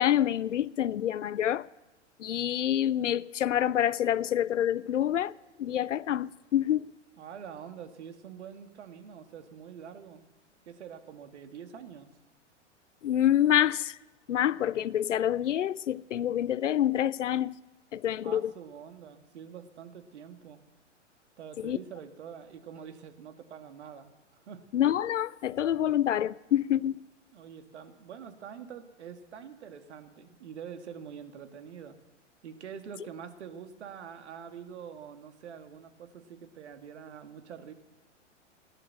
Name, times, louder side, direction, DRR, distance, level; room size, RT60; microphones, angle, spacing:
voice 1, 0.0-1.7 2.2-5.3 5.6-6.9 13.0-14.0 14.3-17.6 17.9-18.5 21.6-21.8 24.7-27.0, left 11 dB, 80° left, 0.6 m, -27 dB
voice 2, 7.2-10.2 10.7-12.1 18.2-20.6 21.4-24.1 24.4-24.6 27.3-32.0 32.4-37.7, right 7 dB, 65° right, 2.0 m, -45 dB
17.5 x 10.5 x 7.8 m
figure-of-eight pair, 105°, 36 cm